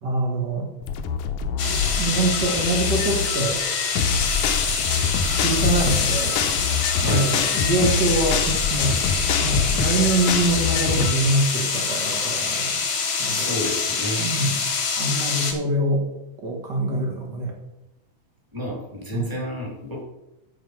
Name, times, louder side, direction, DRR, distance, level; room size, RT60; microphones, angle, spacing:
voice 1, 0.0-0.7 2.0-3.6 5.3-6.5 7.0-9.0 9.4-12.8 13.2-13.6 14.2-14.6 15.0-16.1 16.4-17.5 19.1-19.4, right 2 dB, 45° right, 1 dB, 1.5 m, -24 dB
sound 1, 0.8-11.1, left 6 dB, 75° left, 2.1 m, -25 dB
sound 2, 1.6-15.5, left 5 dB, 50° left, 1.7 m, -25 dB
voice 2, 7.0-7.3 13.2-14.3 18.5-20.0, equal, 10° right, -1 dB, 1.8 m, -30 dB
9.4 x 7.6 x 4.8 m, 0.92 s
omnidirectional pair, 3.7 m